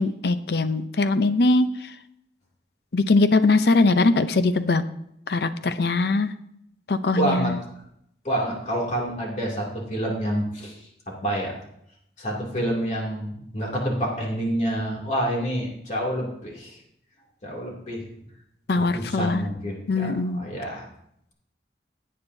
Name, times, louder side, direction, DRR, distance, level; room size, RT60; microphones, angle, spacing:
voice 1, 0.0-1.9 2.9-4.8 5.3-6.3 6.9-7.6 18.7-19.5 19.9-20.4, left 3 dB, 65° left, 11 dB, 0.6 m, -21 dB
voice 2, 7.1-7.5 8.2-11.5 12.2-16.8 17.4-18.1 18.7-20.9, right 1 dB, 40° left, -1 dB, 2.6 m, -28 dB
16.5 x 8.7 x 2.7 m, 0.74 s
head